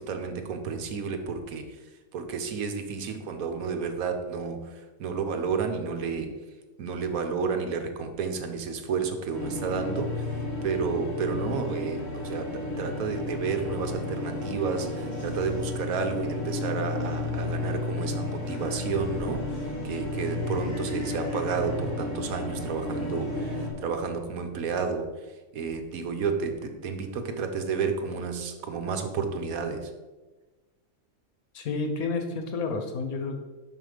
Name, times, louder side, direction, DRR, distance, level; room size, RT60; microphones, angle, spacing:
voice 1, 0.0-1.6 2.1-4.7 5.0-6.3 6.8-10.3 10.6-25.1 25.5-29.9, right 5 dB, 80° right, 6 dB, 1.2 m, -31 dB
sound 1, 9.3-23.7, left 2 dB, 30° left, 1.6 m, -32 dB
voice 2, 31.5-33.4, left 4 dB, 85° left, 4 dB, 1.4 m, -30 dB
5.6 x 5.2 x 4.9 m, 1.2 s
omnidirectional pair, 1.5 m